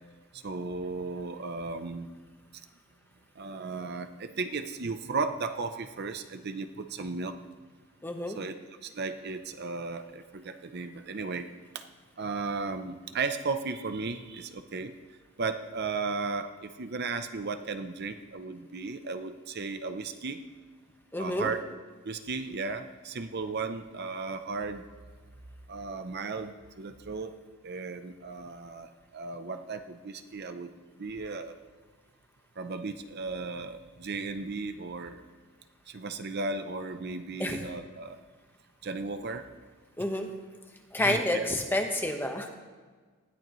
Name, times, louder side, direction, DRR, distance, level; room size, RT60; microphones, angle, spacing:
voice 1, 0.3-2.1 3.4-7.4 8.3-8.6 8.8-11.5 11.7-11.8 12.2-14.9 15.4-20.4 21.2-21.6 22.0-24.8 25.7-27.3 27.6-31.6 32.6-35.2 35.9-38.2 38.8-39.5 41.0-41.4, right 4 dB, 50° right, 8 dB, 0.6 m, -35 dB
voice 2, 8.0-8.4 21.1-21.5 37.4-37.6 40.0-40.3 40.9-42.5, left 1 dB, 10° left, 3 dB, 1.1 m, -29 dB
19.0 x 13.5 x 3.1 m, 1.5 s
head